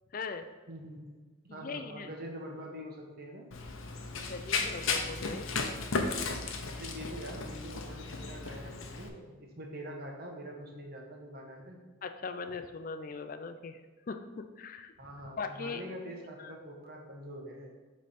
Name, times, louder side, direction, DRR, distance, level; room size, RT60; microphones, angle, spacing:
voice 1, 0.1-0.4 1.5-2.1 4.1-5.5 12.0-13.8 14.1-14.9 15.4-15.8 16.4-16.5, left 4 dB, 40° left, 8 dB, 0.4 m, -40 dB
voice 2, 0.7-1.1 1.4-3.5 6.7-11.8 15.0-17.8, equal, 45° right, 1 dB, 1.1 m, -44 dB
Run, 3.5-9.1, left 4 dB, 70° left, 0.7 m, -35 dB
8.0 x 3.3 x 4.3 m, 1.4 s
head